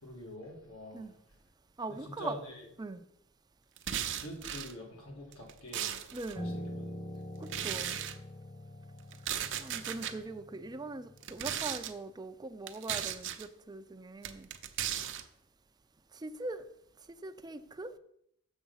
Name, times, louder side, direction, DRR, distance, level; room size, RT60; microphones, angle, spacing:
voice 1, 0.0-1.1 1.9-2.7 4.1-6.0 6.4-6.9 7.7-8.0, left 1 dB, 75° left, 0 dB, 2.3 m, -45 dB
voice 2, 1.8-2.4 2.8-3.0 6.1-6.6 7.4-7.9 9.6-14.5 16.1-16.6 17.2-17.9, right 2 dB, 20° right, 9 dB, 0.5 m, -41 dB
sound 1, 3.8-4.7 5.3-6.4 7.5-8.1 9.1-10.1 11.2-11.9 12.7-13.5 14.2-15.2, right 10 dB, 60° right, 0.7 m, -36 dB
Piano, 6.4-11.6, equal, 30° left, 1.1 m, -44 dB
7.0 x 6.5 x 5.5 m, 0.73 s
head